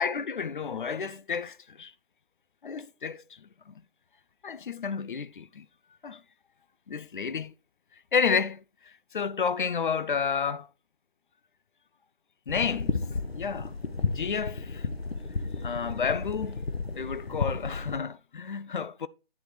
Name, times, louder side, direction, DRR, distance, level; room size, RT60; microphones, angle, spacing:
voice 1, 0.0-1.9 2.6-3.7 4.4-5.7 6.0-6.2 6.9-7.5 8.1-10.7 12.5-13.0 13.3-13.7 14.0-14.9 15.6-16.6 16.9-19.1, left 6 dB, 55° left, 0.5 m, -31 dB
sound 1, 12.5-18.0, left 4 dB, 85° left, 1.1 m, -33 dB
9.2 x 7.6 x 3.2 m
figure-of-eight pair, 150°, 30 cm